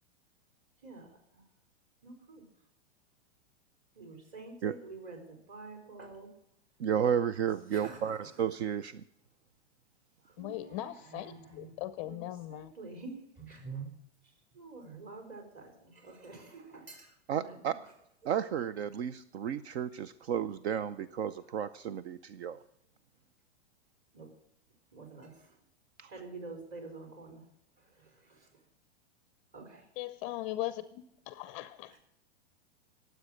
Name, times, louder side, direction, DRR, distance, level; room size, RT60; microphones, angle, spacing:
voice 1, 2.0-2.4 3.9-6.3 7.3-7.4 7.7-8.2 10.2-14.0 14.5-17.8 24.1-24.3 24.9-25.6 26.1-27.4 27.8-28.6 29.5-29.9 31.9-32.0, right 4 dB, 35° right, 4.5 m, -48 dB
voice 2, 6.8-9.0 17.3-17.7 18.2-22.6 26.0-26.1, right 8 dB, 70° right, 0.7 m, -32 dB
voice 3, 10.4-12.7 30.0-31.9, left 15 dB, 30° left, 0.5 m, -39 dB
20.0 x 8.0 x 6.5 m
supercardioid pair, 150°, 34 cm